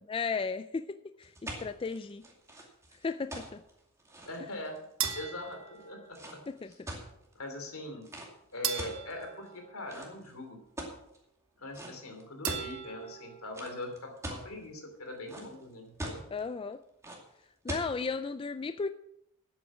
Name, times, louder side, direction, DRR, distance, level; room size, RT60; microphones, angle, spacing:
voice 1, 0.1-2.2 3.0-3.6 6.5-6.7 16.3-16.8 17.6-18.9, left 4 dB, 25° left, 10 dB, 0.3 m, -35 dB
sound 1, 1.2-7.3 8.0-8.3 8.8-9.5 9.9-10.3 10.8-11.2 11.7-11.9 12.2-12.7 13.5-14.5 14.9-15.6 16.0-16.4 17.0-17.2 17.7-17.9, right 1 dB, 15° right, 2.4 m, -41 dB
voice 2, 4.2-4.8 5.1-6.4 6.7-6.8 7.3-8.0 8.5-10.6 11.6-16.2, left 1 dB, 75° left, 5 dB, 2.9 m, -42 dB
sound 2, 5.0-6.5 8.6-10.5 12.4-13.6, right 9 dB, 65° right, 1.3 m, -39 dB
12.0 x 8.7 x 6.2 m, 0.80 s
head